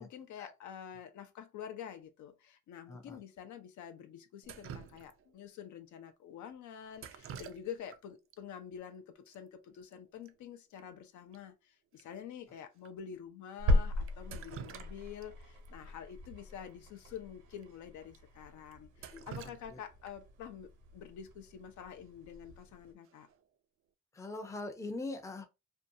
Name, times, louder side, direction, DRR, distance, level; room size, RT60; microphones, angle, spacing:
voice 1, 0.0-23.3, left 8 dB, 75° left, 0.6 m, -48 dB
voice 2, 2.9-3.2 19.1-19.8 24.1-25.5, left 2 dB, 10° left, 0.5 m, -42 dB
Drip, 4.4-5.4 6.9-8.0 8.3-8.4 9.3-9.4 9.7-9.9 10.2-10.3 10.8-10.9 11.3-11.4 12.0-12.1 12.8-12.9 14.1-15.3 15.6-15.7 17.1-17.2 17.6-17.7 18.1-18.2 18.7-20.3 22.3-22.6 23.0-23.4, right 7 dB, 45° right, 0.4 m, -49 dB
sound 1, 13.6-22.9, left 1 dB, 80° right, 1.1 m, -38 dB
2.6 x 2.2 x 2.6 m
cardioid pair, 90°, 30 cm